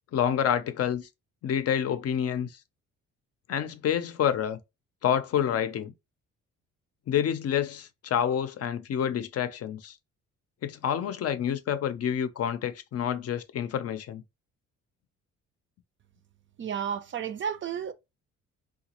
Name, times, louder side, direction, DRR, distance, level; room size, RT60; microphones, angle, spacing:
voice 1, 0.1-1.1 1.4-2.5 3.5-4.6 5.0-5.9 7.1-9.9 10.6-14.2, left 9 dB, 55° left, 0.5 m, -28 dB
voice 2, 16.6-17.9, right 8 dB, 40° right, 0.5 m, -32 dB
3.8 x 2.3 x 2.9 m
cardioid pair, 90°, 30 cm